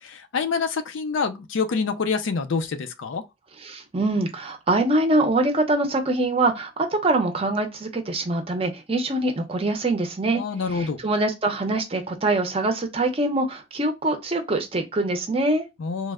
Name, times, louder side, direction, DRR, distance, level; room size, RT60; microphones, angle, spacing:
voice 1, 0.0-3.2 10.4-11.0 15.8-16.1, left 5 dB, 70° left, 0.4 m, -26 dB
voice 2, 3.6-10.4 10.7-15.6, right 2 dB, 30° right, 0.6 m, -24 dB
3.1 x 2.1 x 3.5 m
head